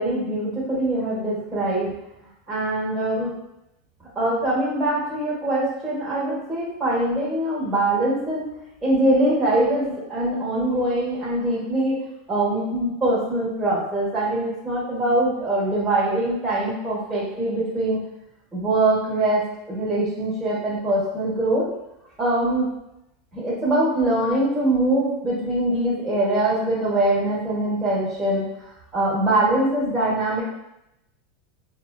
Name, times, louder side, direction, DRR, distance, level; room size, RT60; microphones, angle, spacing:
voice 1, 0.0-1.9 2.5-3.3 4.1-8.5 8.8-12.0 12.3-18.0 18.5-19.4 19.7-21.6 22.2-22.6 23.3-28.4 28.9-30.4, right 1 dB, 15° right, -9 dB, 1.3 m, -23 dB
3.6 x 2.3 x 2.3 m, 0.84 s
hypercardioid pair, 110°, 0 cm